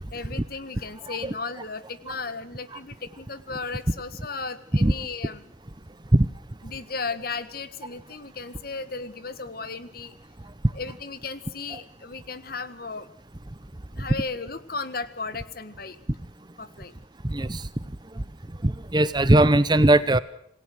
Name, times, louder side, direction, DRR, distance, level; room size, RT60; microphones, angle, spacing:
voice 1, 0.1-5.5 6.6-10.1 10.7-13.1 13.9-16.0 16.6-17.0, left 4 dB, 50° left, 13 dB, 1.6 m, -35 dB
voice 2, 17.2-17.7 18.2-18.3 18.6-20.2, right 1 dB, 20° right, 15 dB, 0.8 m, -19 dB
27.5 x 18.0 x 6.3 m, 0.69 s
head